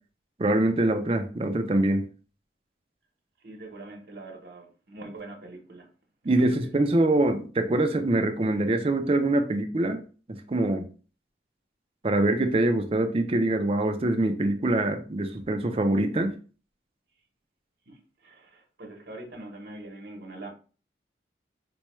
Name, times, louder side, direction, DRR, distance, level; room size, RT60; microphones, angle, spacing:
voice 1, 0.4-2.1 6.2-10.0 10.3-10.9 12.0-16.3, right 2 dB, 30° right, 0.4 m, -24 dB
voice 2, 3.4-5.9 6.2-6.7 17.9-20.5, right 2 dB, 55° right, 0.9 m, -43 dB
4.3 x 2.2 x 3.0 m
head